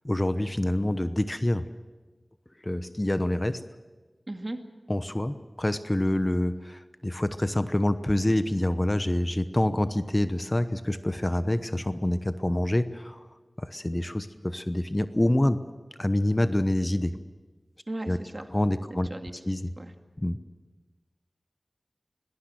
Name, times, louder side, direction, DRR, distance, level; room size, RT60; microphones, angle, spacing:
voice 1, 0.0-1.7 2.6-3.6 4.9-13.2 13.6-15.6 16.0-17.2 18.1-18.2 18.5-19.1 19.5-19.6 20.2-20.4, left 1 dB, 25° left, 11 dB, 1.0 m, -26 dB
voice 2, 4.3-4.6 17.9-18.5 18.9-19.9, right 1 dB, 40° right, 5 dB, 2.2 m, -37 dB
23.0 x 18.5 x 7.8 m, 1.3 s
wide cardioid pair, 45°, 0 cm